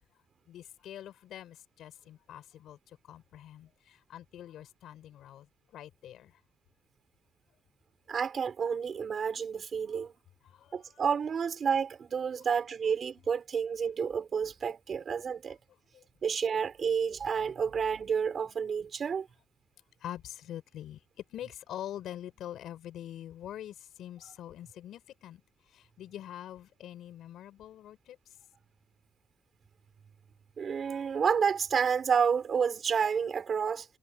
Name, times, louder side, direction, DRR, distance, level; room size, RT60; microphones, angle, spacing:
voice 1, 0.5-6.4 10.4-11.0 15.9-16.1 20.0-28.4, left 11 dB, 80° left, 5.3 m, -45 dB
voice 2, 8.1-10.1 10.7-15.6 16.2-19.3 30.6-33.9, right 6 dB, 50° right, 5.1 m, -30 dB
cardioid pair, 90°, 0 cm